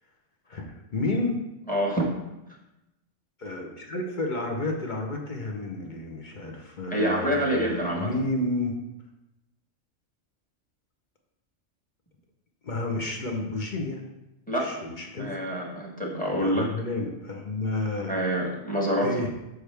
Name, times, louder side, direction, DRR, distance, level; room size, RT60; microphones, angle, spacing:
voice 1, 0.5-1.4 3.4-8.7 12.6-14.0 14.6-15.4 16.3-18.1 19.0-19.3, left 2 dB, 40° left, 1 dB, 0.9 m, -31 dB
voice 2, 1.7-2.1 6.9-8.1 14.5-14.8 15.2-16.7 18.1-19.2, equal, 5° left, -3 dB, 1.3 m, -26 dB
6.5 x 6.0 x 3.4 m, 0.94 s
omnidirectional pair, 1.3 m